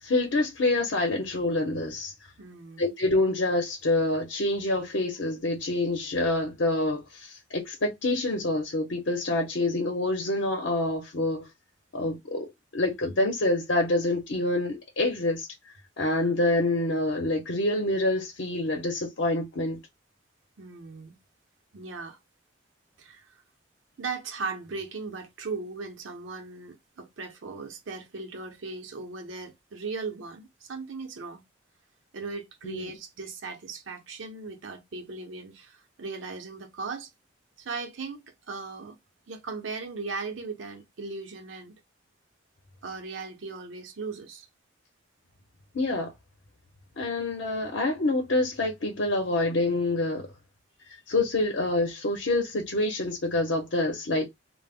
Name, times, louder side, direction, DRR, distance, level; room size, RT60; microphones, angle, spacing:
voice 1, 0.0-2.1 2.8-11.5 11.9-12.5 12.7-15.5 16.0-19.8 32.6-32.9 45.7-46.1 47.0-50.2 51.1-54.3, left 2 dB, 70° left, 0.7 m, -27 dB
voice 2, 2.4-2.9 20.6-21.2 21.7-22.2 23.0-23.3 24.0-31.4 32.1-37.1 37.6-39.0 39.3-41.8 42.8-44.5, right 4 dB, 80° right, 0.6 m, -38 dB
2.1 x 2.0 x 3.4 m
head